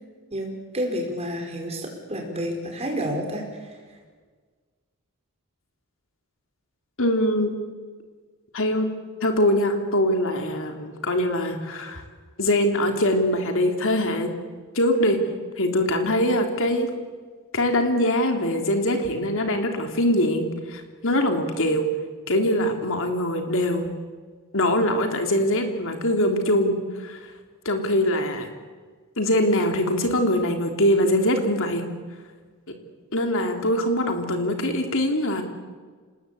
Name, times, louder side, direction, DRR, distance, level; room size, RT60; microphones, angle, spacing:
voice 1, 0.3-3.4, equal, 30° right, 2 dB, 5.4 m, -29 dB
voice 2, 7.0-7.5 8.5-8.9 9.2-12.0 12.4-14.3 14.8-15.2 15.6-16.9 17.5-21.9 22.3-23.9 24.5-26.8 27.0-27.2 27.7-28.5 29.2-31.8 33.1-35.4, left 1 dB, 60° left, 4 dB, 3.4 m, -23 dB
27.0 x 20.0 x 8.6 m, 1.5 s
head